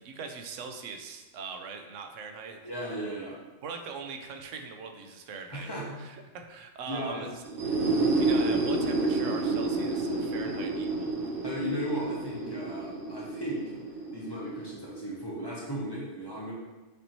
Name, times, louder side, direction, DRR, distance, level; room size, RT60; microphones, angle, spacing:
voice 1, 0.0-2.6 3.6-5.7 6.0-7.3 8.2-11.3, right 5 dB, 75° right, 5 dB, 0.9 m, -41 dB
voice 2, 2.6-3.4 5.5-6.0 6.9-7.3 11.4-13.7 14.1-16.5, equal, 20° left, -5 dB, 0.8 m, -36 dB
sound 1, 7.4-15.1, right 2 dB, 55° right, 0.7 m, -29 dB
6.6 x 2.7 x 3.0 m, 1.1 s
omnidirectional pair, 1.3 m